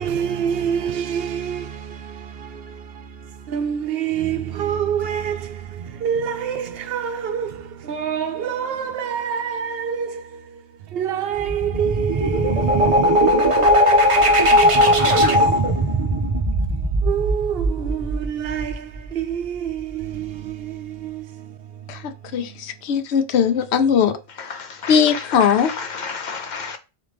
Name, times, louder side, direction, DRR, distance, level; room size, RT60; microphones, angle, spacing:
voice 1, 0.0-22.6, right 8 dB, 65° right, 0.8 m, -27 dB
sound 1, 11.3-19.0, equal, 35° right, 0.7 m, -18 dB
voice 2, 21.9-24.2 24.9-25.7, left 7 dB, 80° left, 0.9 m, -19 dB
voice 3, 24.4-26.8, left 5 dB, 55° left, 0.6 m, -32 dB
3.8 x 3.3 x 3.4 m
omnidirectional pair, 1.1 m